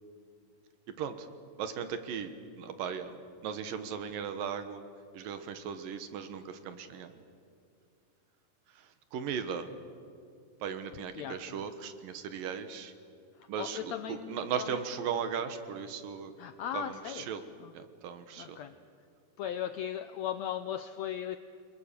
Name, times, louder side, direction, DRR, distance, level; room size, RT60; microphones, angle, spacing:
voice 1, 1.6-3.2 3.4-4.8 5.1-7.1 9.1-9.7 10.6-12.9 13.5-16.3 16.7-17.4 17.7-18.6, right 7 dB, 80° right, 10 dB, 3.0 m, -37 dB
voice 2, 11.1-11.7 13.6-14.8 16.4-17.3 17.6-17.7 18.4-18.7 19.4-21.4, left 10 dB, 85° left, 10 dB, 1.5 m, -37 dB
29.0 x 22.0 x 6.8 m, 2.4 s
omnidirectional pair, 4.0 m